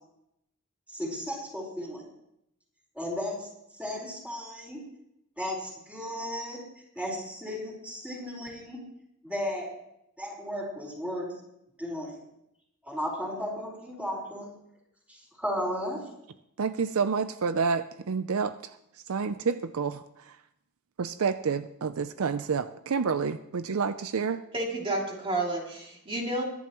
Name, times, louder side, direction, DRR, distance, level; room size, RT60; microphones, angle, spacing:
voice 1, 0.9-2.1 3.0-3.5 3.8-4.8 5.4-6.6 6.9-8.8 9.2-9.7 10.2-11.3 11.8-12.1 12.8-14.5 15.4-16.0, equal, 5° right, -2 dB, 4.5 m, -34 dB
voice 2, 16.6-18.7 19.1-20.4 21.0-24.4, right 5 dB, 70° right, 12 dB, 0.5 m, -29 dB
voice 3, 24.5-26.4, right 2 dB, 25° right, -2 dB, 2.7 m, -30 dB
22.0 x 11.0 x 3.1 m, 0.80 s
head